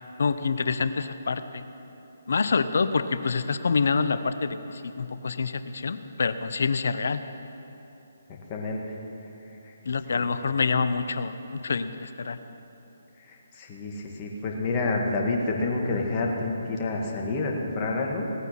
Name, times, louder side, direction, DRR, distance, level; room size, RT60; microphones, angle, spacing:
voice 1, 0.2-1.7 2.3-7.2 9.8-12.4, left 4 dB, 60° left, 11 dB, 0.7 m, -26 dB
voice 2, 8.5-9.0 9.6-9.7 10.1-10.3 13.2-18.3, left 3 dB, 30° left, 0 dB, 2.0 m, -29 dB
17.5 x 9.0 x 6.0 m, 3.0 s
figure-of-eight pair, 140°, 0 cm